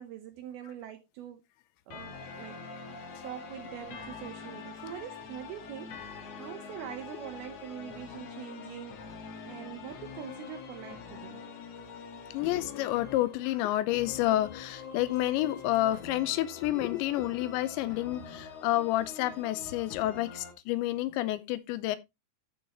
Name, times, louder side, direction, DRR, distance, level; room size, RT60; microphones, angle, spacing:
voice 1, 0.0-1.4 1.9-2.6 3.2-9.0 9.4-11.4, right 11 dB, 80° right, 2.3 m, -44 dB
sound 1, 1.9-20.5, left 5 dB, 65° left, 1.6 m, -45 dB
voice 2, 12.3-22.0, left 15 dB, 85° left, 3.0 m, -29 dB
12.5 x 6.5 x 2.9 m
omnidirectional pair, 5.3 m